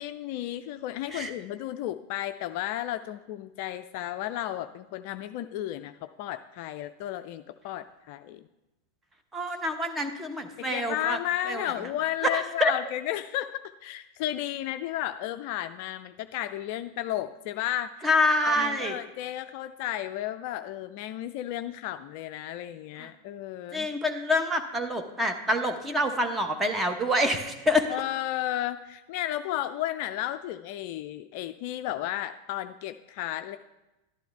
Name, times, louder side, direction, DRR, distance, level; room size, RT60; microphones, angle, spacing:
voice 1, 0.0-8.4 10.6-18.1 18.4-23.9 27.9-33.6, left 13 dB, 50° left, 10 dB, 0.3 m, -33 dB
voice 2, 9.3-11.2 11.5-11.6 12.2-12.7 18.0-19.0 23.0-23.1 23.7-27.9, left 1 dB, 15° right, 6 dB, 0.9 m, -26 dB
12.0 x 11.5 x 3.4 m, 1.0 s
figure-of-eight pair, 90°, 0 cm